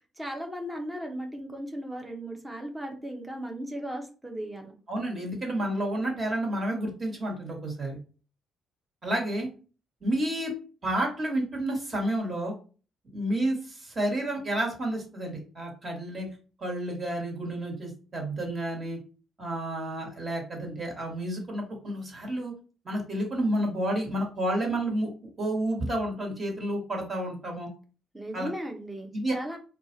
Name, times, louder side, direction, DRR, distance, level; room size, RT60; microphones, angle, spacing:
voice 1, 0.2-4.7 28.1-29.6, equal, 10° right, 3 dB, 1.0 m, -36 dB
voice 2, 4.9-8.0 9.0-9.5 10.0-10.5 10.8-12.5 13.1-16.3 16.6-19.0 19.4-22.5 22.8-25.1 25.4-27.7 28.3-28.5 29.1-29.3, right 1 dB, 30° right, 0 dB, 1.9 m, -30 dB
4.6 x 2.5 x 4.0 m, 0.36 s
cardioid pair, 125°, 0 cm